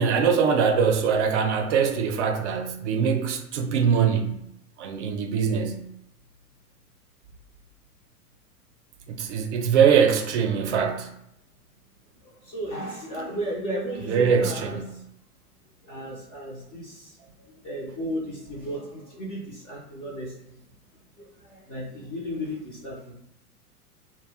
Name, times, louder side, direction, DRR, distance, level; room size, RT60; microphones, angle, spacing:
voice 1, 0.0-4.4 4.8-5.8 9.1-11.1 14.1-14.9, right 6 dB, 50° right, 0.5 m, -22 dB
voice 2, 12.4-15.0 15.9-17.2 17.5-20.6 21.2-23.1, equal, 20° left, 0.4 m, -34 dB
2.3 x 2.0 x 3.4 m
hypercardioid pair, 105°, 46 cm